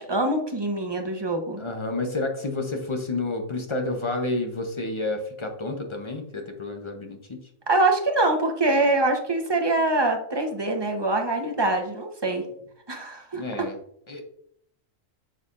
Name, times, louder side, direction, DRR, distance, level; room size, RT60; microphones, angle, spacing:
voice 1, 0.0-1.6 7.7-12.4 12.9-13.7, right 2 dB, 25° right, 3 dB, 0.7 m, -24 dB
voice 2, 1.6-7.4 13.3-13.8 14.1-14.2, left 2 dB, 30° left, 4 dB, 0.6 m, -30 dB
6.8 x 6.6 x 2.5 m, 0.69 s
omnidirectional pair, 1.4 m